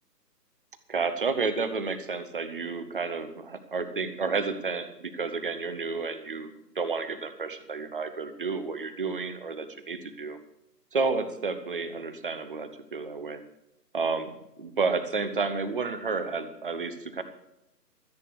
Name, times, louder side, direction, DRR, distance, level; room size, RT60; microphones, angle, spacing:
voice 1, 0.9-10.4 10.9-13.4 13.9-17.2, right 4 dB, 30° right, 11 dB, 0.9 m, -31 dB
13.5 x 8.4 x 6.7 m, 0.85 s
figure-of-eight pair, 145°, 49 cm